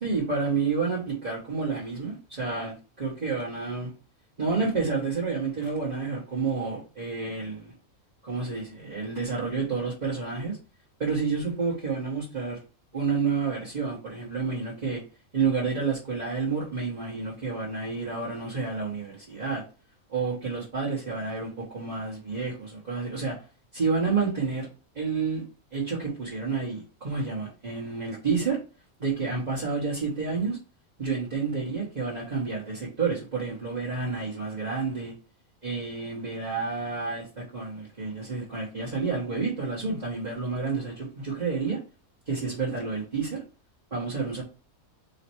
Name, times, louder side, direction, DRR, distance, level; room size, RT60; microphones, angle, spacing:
voice 1, 0.0-3.9 4.4-7.6 8.2-10.6 11.0-12.6 12.9-15.0 15.3-19.6 20.1-23.4 23.7-24.7 24.9-25.4 25.7-28.6 29.0-30.6 31.0-35.1 35.6-41.8 42.3-43.4 43.9-44.4, right 4 dB, 30° right, 1.3 m, -29 dB
4.0 x 3.2 x 2.9 m
omnidirectional pair, 1.5 m